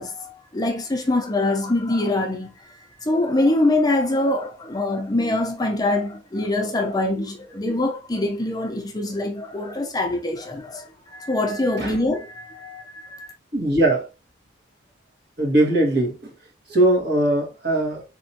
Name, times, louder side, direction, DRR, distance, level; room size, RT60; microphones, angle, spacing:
voice 1, 0.0-13.3, left 2 dB, 20° left, 0.5 m, -24 dB
voice 2, 13.5-14.1 15.4-16.3 16.7-18.0, right 1 dB, 55° right, 1.6 m, -20 dB
4.4 x 3.0 x 2.7 m
head